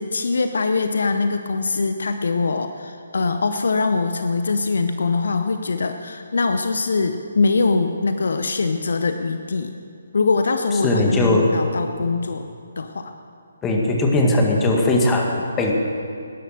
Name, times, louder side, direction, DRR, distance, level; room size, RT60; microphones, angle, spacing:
voice 1, 0.0-9.7 10.1-12.5 12.8-13.1, left 4 dB, 60° left, 8 dB, 0.8 m, -22 dB
voice 2, 10.8-11.5 13.6-15.7, left 2 dB, 15° left, 0 dB, 1.9 m, -19 dB
19.0 x 11.0 x 6.6 m, 2.4 s
figure-of-eight pair, 140°, 0 cm